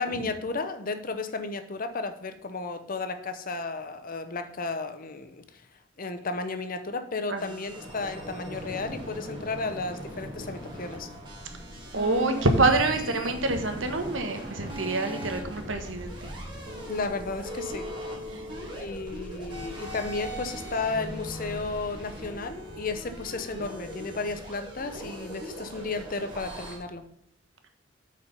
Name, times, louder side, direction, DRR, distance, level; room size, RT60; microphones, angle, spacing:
voice 1, 0.0-5.4 6.0-11.1 16.9-17.9 18.7-27.0, left 3 dB, 45° left, 9 dB, 0.8 m, -33 dB
sound 1, 7.4-26.8, equal, 25° right, 2.5 m, -39 dB
voice 2, 11.9-16.3 18.3-18.4, right 3 dB, 80° right, 6 dB, 1.3 m, -26 dB
8.3 x 5.0 x 5.4 m, 0.75 s
head